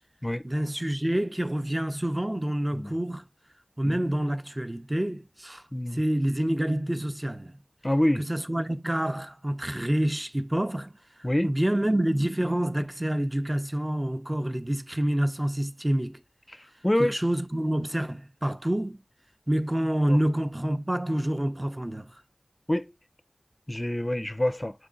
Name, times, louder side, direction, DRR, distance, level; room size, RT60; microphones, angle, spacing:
voice 1, 0.4-3.2 3.8-5.6 5.9-7.5 8.2-10.9 11.4-16.2 17.0-19.0 19.5-22.1, right 1 dB, 25° right, 0.7 m, -27 dB
voice 2, 7.8-8.2 11.2-11.5 16.8-17.1 20.1-20.2 22.7-22.8 23.7-24.7, left 1 dB, 30° left, 0.5 m, -26 dB
7.5 x 3.6 x 3.9 m
wide cardioid pair, 40°, 0 cm